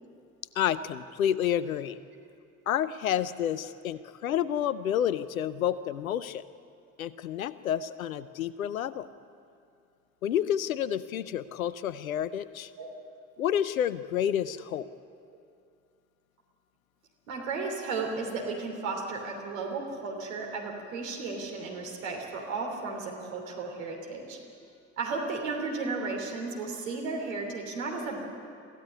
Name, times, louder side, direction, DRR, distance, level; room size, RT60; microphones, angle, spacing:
voice 1, 0.6-2.0 2.7-6.4 7.0-9.1 10.2-12.7 13.4-14.9, left 10 dB, 85° left, 17 dB, 0.6 m, -29 dB
voice 2, 17.3-24.4 25.0-28.3, right 4 dB, 75° right, 1 dB, 3.2 m, -34 dB
22.5 x 15.5 x 9.6 m, 2.4 s
figure-of-eight pair, 50°, 40 cm